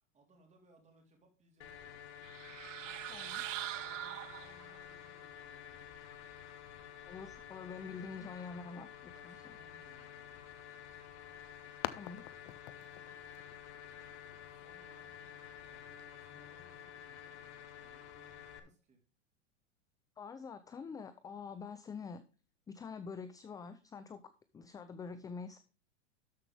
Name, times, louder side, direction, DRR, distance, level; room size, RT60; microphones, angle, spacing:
voice 1, 0.1-2.1 3.7-5.9 9.1-10.9 13.7-15.1 15.6-19.0, right 2 dB, 20° right, 3.7 m, -67 dB
sound 1, 1.6-18.6, left 9 dB, 65° left, 1.7 m, -51 dB
sound 2, 2.2-4.9, right 14 dB, 90° right, 0.5 m, -42 dB
voice 2, 3.1-3.5 7.1-9.6 11.9-12.3 16.3-16.5 20.2-22.2 22.7-25.6, left 5 dB, 10° left, 0.4 m, -46 dB
sound 3, 10.9-16.0, left 16 dB, 50° left, 0.8 m, -48 dB
13.0 x 5.8 x 3.4 m
hypercardioid pair, 120°, 36 cm